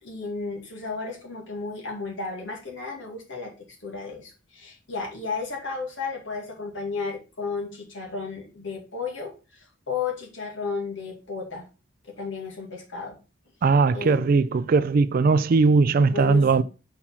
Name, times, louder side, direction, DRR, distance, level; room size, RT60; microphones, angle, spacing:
voice 1, 0.0-3.5 3.8-11.7 12.2-13.2 13.6-14.4 16.1-16.6, left 4 dB, 65° left, 2.2 m, -33 dB
voice 2, 13.6-16.6, right 4 dB, 45° right, 0.3 m, -19 dB
4.6 x 4.3 x 5.5 m
head